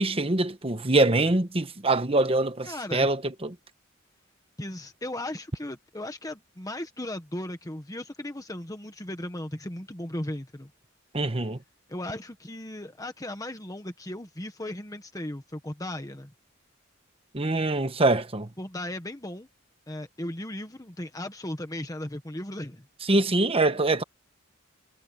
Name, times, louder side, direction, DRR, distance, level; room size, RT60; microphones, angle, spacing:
voice 1, 0.0-3.5 11.1-11.6 17.3-18.5 23.1-24.0, right 2 dB, 30° right, 1.2 m, -24 dB
voice 2, 2.6-3.1 4.6-10.7 11.9-16.3 18.6-19.5 19.9-22.9, left 1 dB, 15° left, 1.4 m, -36 dB
head